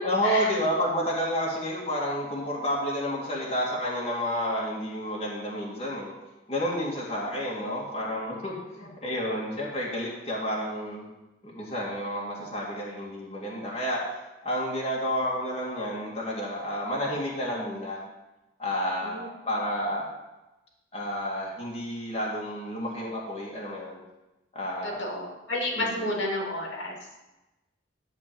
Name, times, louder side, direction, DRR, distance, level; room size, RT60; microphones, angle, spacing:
voice 1, 0.0-6.1 6.5-11.1 11.4-14.0 14.4-18.0 18.6-20.1 20.9-24.0 24.5-25.0 25.7-26.1, equal, 30° left, -4 dB, 2.1 m, -30 dB
voice 2, 25.0-27.0, left 1 dB, 80° left, -1 dB, 2.5 m, -30 dB
12.0 x 4.4 x 7.5 m, 1.0 s
head